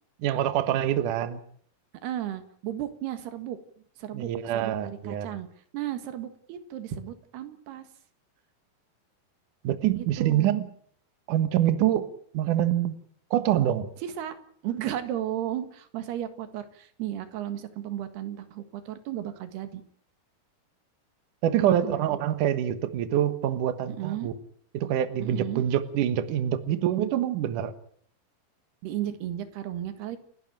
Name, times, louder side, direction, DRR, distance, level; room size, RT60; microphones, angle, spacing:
voice 1, 0.2-1.4 4.1-5.4 9.6-10.7 11.3-13.0 13.3-13.9 21.4-24.4 24.7-27.7, right 11 dB, 65° right, 2.6 m, -25 dB
voice 2, 2.0-3.6 4.0-5.5 5.7-7.9 9.9-10.6 14.0-14.4 14.6-19.8 21.6-22.2 23.9-24.3 25.2-25.6 28.8-30.2, right 11 dB, 85° right, 3.7 m, -34 dB
29.5 x 11.5 x 8.9 m
omnidirectional pair, 4.5 m